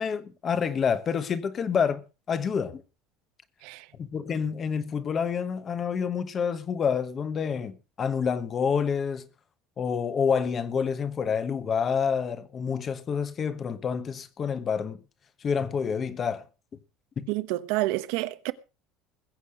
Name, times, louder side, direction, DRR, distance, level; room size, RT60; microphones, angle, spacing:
voice 1, 0.0-2.8 4.0-9.2 9.8-15.0 15.4-16.4 17.2-17.3, left 6 dB, 20° left, 1.1 m, -28 dB
voice 2, 17.3-18.5, right 18 dB, 60° right, 1.1 m, -29 dB
21.0 x 8.4 x 4.9 m
cardioid pair, 180°, 0 cm